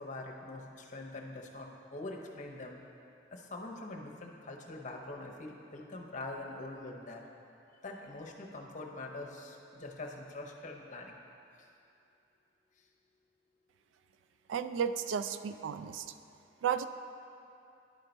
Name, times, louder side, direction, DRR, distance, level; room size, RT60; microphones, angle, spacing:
voice 1, 0.0-2.8 3.3-7.2 7.8-11.2, left 2 dB, 40° left, 0 dB, 0.7 m, -44 dB
voice 2, 14.5-16.1 16.6-16.9, right 8 dB, 85° right, 12 dB, 0.3 m, -33 dB
11.0 x 4.4 x 3.9 m, 2.7 s
head